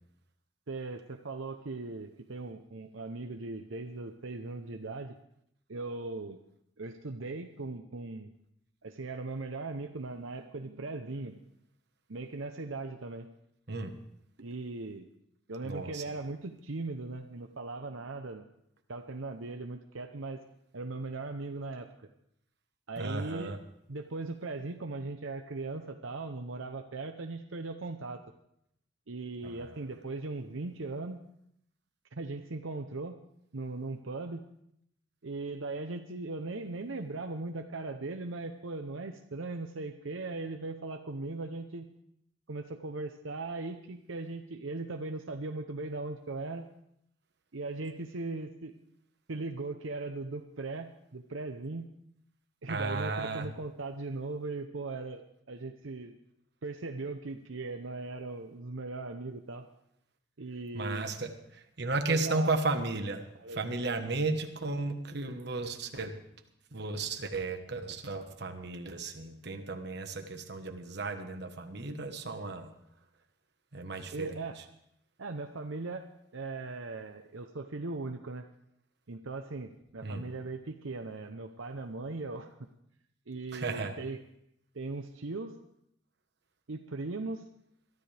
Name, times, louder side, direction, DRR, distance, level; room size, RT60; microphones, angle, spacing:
voice 1, 0.7-5.2 5.7-6.4 6.8-8.3 8.8-11.4 12.1-13.3 14.4-15.1 15.5-18.5 18.9-20.4 20.7-21.9 22.9-23.5 23.9-28.2 29.1-31.2 32.1-33.2 33.5-34.4 35.2-41.9 42.5-46.7 47.5-48.7 49.3-51.9 52.6-55.2 55.5-56.2 56.6-59.6 60.4-61.1 62.1-62.5 63.4-63.6 74.1-74.6 75.2-78.5 79.1-82.5 83.3-84.2 84.7-85.5 86.7-87.4, right 3 dB, 75° right, 5 dB, 0.8 m, -39 dB
voice 2, 15.6-16.0 23.0-23.6 29.4-29.8 52.7-53.5 60.7-66.2 66.7-72.7 73.7-74.6 80.0-80.3 83.5-84.0, right 3 dB, 55° right, 6 dB, 1.3 m, -34 dB
22.5 x 13.0 x 3.4 m, 0.74 s
head